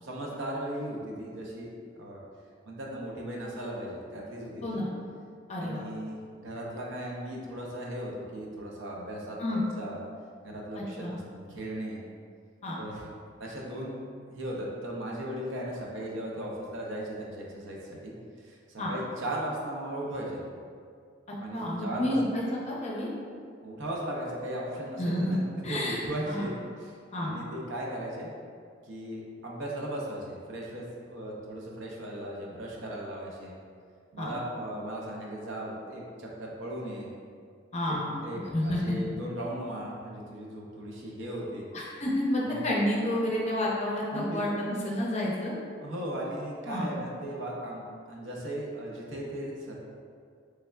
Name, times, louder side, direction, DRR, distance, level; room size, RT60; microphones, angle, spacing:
voice 1, 0.0-2.2 2.6-4.8 5.6-10.0 10.4-12.0 12.8-13.1 13.4-14.0 14.3-18.1 18.4-20.5 21.4-22.1 23.6-25.4 25.7-26.5 26.8-26.9 27.2-28.3 28.8-33.5 34.1-37.1 37.9-41.7 42.4-42.7 44.1-44.4 45.8-49.7, right 1 dB, 75° right, -2 dB, 0.6 m, -37 dB
voice 2, 5.5-5.8 9.4-9.6 10.8-11.2 12.6-12.8 18.8-18.9 21.5-23.1 25.0-25.4 25.6-26.0 26.3-26.5 27.1-27.3 34.2-34.3 37.7-38.2 38.5-38.8 41.7-45.6 46.7-46.9, left 1 dB, 35° left, -4 dB, 0.5 m, -30 dB
3.4 x 3.4 x 2.2 m, 2.2 s
head